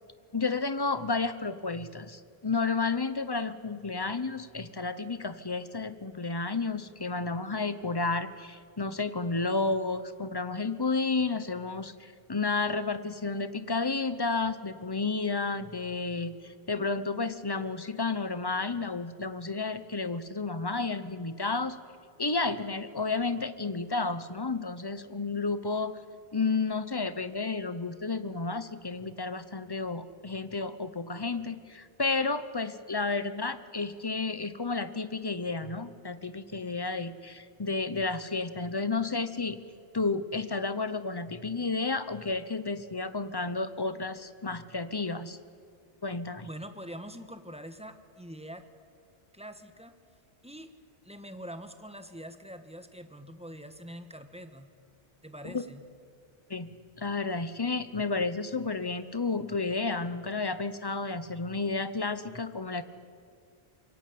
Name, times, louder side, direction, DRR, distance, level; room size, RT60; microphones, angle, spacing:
voice 1, 0.3-21.8 22.2-25.9 26.3-39.6 39.9-45.4 46.0-46.5 55.4-55.6 56.5-62.8, left 3 dB, 25° left, 13 dB, 1.0 m, -31 dB
voice 2, 46.4-48.7 49.3-49.9 50.4-50.7 51.0-54.7 55.2-55.8, equal, 5° right, 8 dB, 1.5 m, -44 dB
26.0 x 22.5 x 8.7 m, 2.2 s
omnidirectional pair, 1.0 m